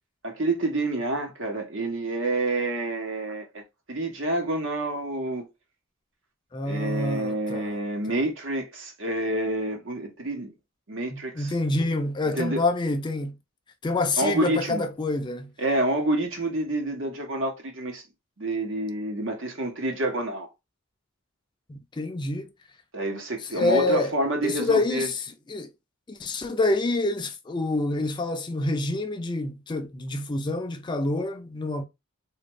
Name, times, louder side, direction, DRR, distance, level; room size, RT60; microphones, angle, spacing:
voice 1, 0.2-3.6 3.9-5.5 6.6-10.5 10.9-11.5 12.2-12.6 14.2-14.8 15.6-18.0 18.4-20.5 22.9-25.1, right 1 dB, 65° right, 1.1 m, -28 dB
voice 2, 6.5-7.8 11.1-13.4 13.8-15.5 21.7-22.5 23.5-24.1 24.4-25.7 26.1-31.8, left 2 dB, 20° left, 0.4 m, -27 dB
3.4 x 2.5 x 3.0 m
head